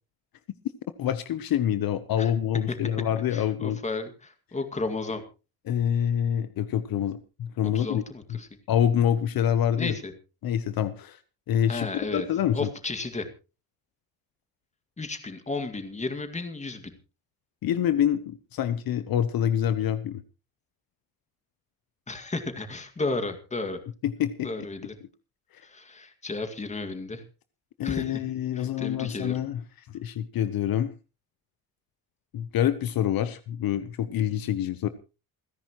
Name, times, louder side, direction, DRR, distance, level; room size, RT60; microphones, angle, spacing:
voice 1, 1.0-3.8 5.7-8.0 8.3-8.4 8.7-10.0 10.4-11.2 11.5-11.9 12.1-12.7 17.6-20.2 24.0-24.5 27.8-29.6 29.9-30.9 32.3-34.9, left 10 dB, 65° left, 12 dB, 1.0 m, -26 dB
voice 2, 3.3-5.2 7.7-8.5 9.8-10.1 11.7-12.3 12.5-13.3 15.0-16.9 22.1-23.8 24.4-24.9 25.6-27.2 27.8-28.2 28.5-29.4, left 3 dB, 20° left, 7 dB, 2.1 m, -33 dB
28.5 x 10.5 x 3.1 m, 0.33 s
cardioid pair, 140°, 39 cm